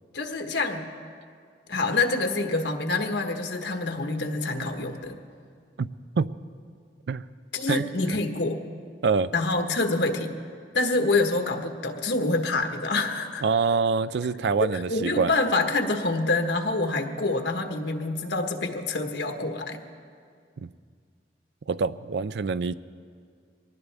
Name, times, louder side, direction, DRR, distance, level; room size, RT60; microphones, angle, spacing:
voice 1, 0.1-0.9 1.7-5.2 7.5-8.6 9.3-10.3 10.7-13.4 14.7-19.8, left 3 dB, 85° left, 4 dB, 1.3 m, -26 dB
voice 2, 9.0-9.3 13.4-15.3 20.6-20.7 21.7-22.7, right 5 dB, 75° right, 15 dB, 0.4 m, -25 dB
22.5 x 19.0 x 3.5 m, 2.2 s
head